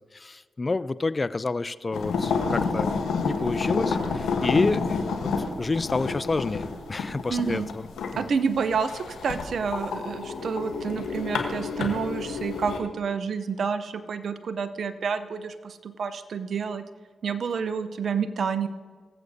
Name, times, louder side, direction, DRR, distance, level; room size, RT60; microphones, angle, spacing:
voice 1, 0.1-2.9 3.2-5.3 5.6-7.9 8.1-8.2, left 3 dB, 35° left, 16 dB, 0.4 m, -29 dB
sound 1, 1.9-12.8, left 4 dB, 80° left, 1.1 m, -29 dB
voice 2, 7.3-7.7 8.2-16.8 17.2-18.7, right 6 dB, 65° right, 12 dB, 0.7 m, -29 dB
19.5 x 8.0 x 2.7 m, 1.5 s
supercardioid pair, 40°, 0 cm